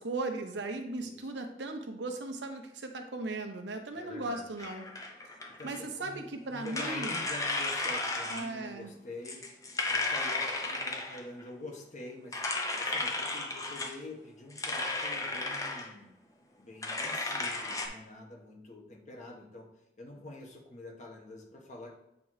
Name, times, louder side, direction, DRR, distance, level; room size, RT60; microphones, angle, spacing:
voice 1, 0.0-4.9 5.6-7.2 8.3-8.9, right 2 dB, 85° right, 5 dB, 0.9 m, -37 dB
voice 2, 1.0-1.3 3.9-4.6 5.6-9.4 9.8-12.4 12.8-16.1 16.6-19.7 20.0-21.9, left 2 dB, 45° left, -1 dB, 1.5 m, -46 dB
sound 1, 4.6-5.8 6.6-8.5 9.2-11.4 12.3-13.9 14.5-15.9 16.8-17.9, left 2 dB, 20° left, 0.8 m, -34 dB
8.3 x 3.0 x 4.8 m, 0.82 s
head